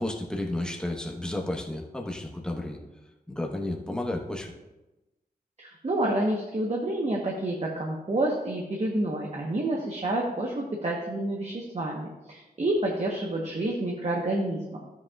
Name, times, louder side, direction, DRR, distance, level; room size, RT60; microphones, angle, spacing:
voice 1, 0.0-2.8 3.3-4.5, left 1 dB, 5° left, -1 dB, 1.2 m, -32 dB
voice 2, 5.6-14.8, right 1 dB, 45° right, -1 dB, 1.1 m, -29 dB
12.5 x 8.1 x 2.4 m, 1.0 s
wide cardioid pair, 95°, 16 cm